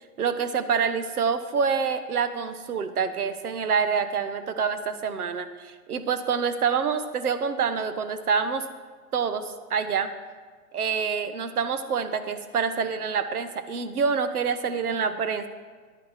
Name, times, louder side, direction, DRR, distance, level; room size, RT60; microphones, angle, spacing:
voice 1, 0.2-8.7 9.1-10.1 10.7-15.5, right 6 dB, 85° right, 11 dB, 1.1 m, -26 dB
10.5 x 7.3 x 6.6 m, 1.5 s
hypercardioid pair, 175°, 44 cm